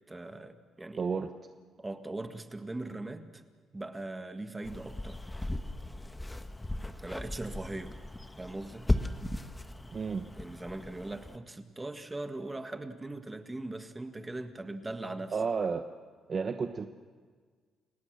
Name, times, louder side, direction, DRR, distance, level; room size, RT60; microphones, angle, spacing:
voice 1, 0.1-1.0 1.8-3.4 3.7-5.2 7.0-7.9 8.4-8.9 10.3-15.4, right 2 dB, 15° right, 7 dB, 1.7 m, -40 dB
voice 2, 1.0-1.3 9.9-10.3 15.3-15.8 16.3-16.8, right 5 dB, 40° right, 7 dB, 1.0 m, -31 dB
sound 1, 4.6-11.4, left 1 dB, 15° left, 1.2 m, -36 dB
30.0 x 17.5 x 6.5 m, 1.5 s
cardioid pair, 90°, 0 cm